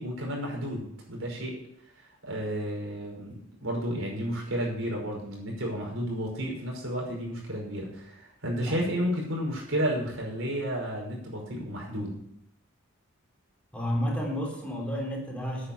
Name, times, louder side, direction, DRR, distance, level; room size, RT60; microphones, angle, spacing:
voice 1, 0.0-1.6 2.2-12.2, equal, 75° right, -2 dB, 5.4 m, -32 dB
voice 2, 13.7-15.7, equal, 5° left, -2 dB, 3.5 m, -31 dB
9.9 x 8.9 x 6.8 m, 0.72 s
head